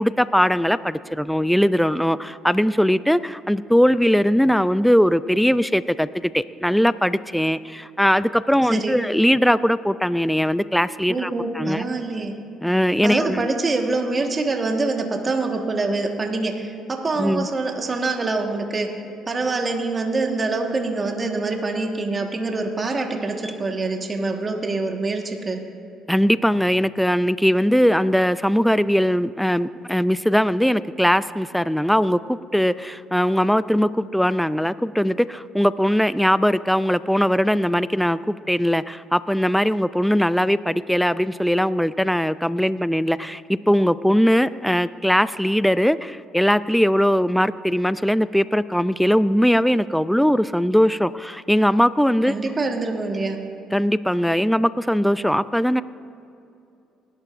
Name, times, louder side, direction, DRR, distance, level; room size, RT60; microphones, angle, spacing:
voice 1, 0.0-11.8 12.6-13.5 17.2-17.5 26.1-38.2 38.5-52.3 53.7-55.8, equal, ahead, 16 dB, 0.3 m, -20 dB
voice 2, 8.6-9.0 11.1-12.3 13.0-19.0 19.3-25.6 52.3-53.4, right 3 dB, 30° right, 3 dB, 1.4 m, -25 dB
19.5 x 11.5 x 2.5 m, 2.7 s
cardioid pair, 90°, 0 cm